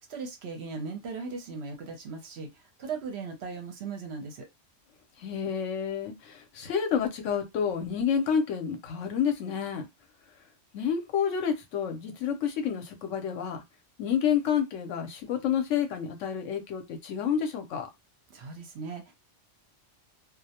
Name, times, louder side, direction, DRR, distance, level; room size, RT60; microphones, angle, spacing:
voice 1, 0.1-4.5 18.3-19.1, right 4 dB, 65° right, 0.8 m, -38 dB
voice 2, 5.2-9.9 10.7-13.6 14.0-17.9, left 7 dB, 75° left, 1.0 m, -29 dB
2.3 x 2.0 x 2.8 m
omnidirectional pair, 1.3 m